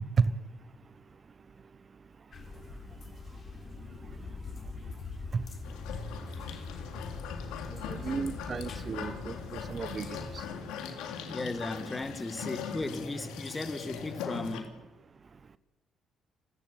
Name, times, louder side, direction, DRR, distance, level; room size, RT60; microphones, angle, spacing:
sound 1, 2.3-10.5, left 4 dB, 50° left, 3.8 m, -43 dB
sound 2, 5.6-14.6, left 6 dB, 85° left, 3.3 m, -40 dB
voice 1, 7.9-10.2, right 5 dB, 45° right, 1.1 m, -32 dB
voice 2, 11.3-14.8, left 2 dB, 20° left, 2.1 m, -36 dB
29.5 x 15.0 x 9.3 m
supercardioid pair, 65°, 0 cm